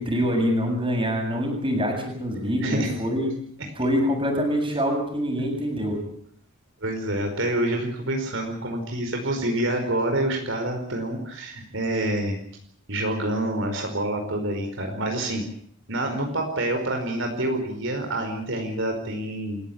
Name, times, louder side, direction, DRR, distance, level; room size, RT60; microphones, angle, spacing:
voice 1, 0.0-3.4 3.8-6.0, equal, 25° right, 3 dB, 7.5 m, -25 dB
voice 2, 2.6-2.9 3.6-3.7 5.4-5.5 6.8-12.4 12.9-15.4 15.9-19.6, right 1 dB, 60° right, 3 dB, 5.0 m, -27 dB
28.5 x 15.5 x 8.8 m, 0.62 s
head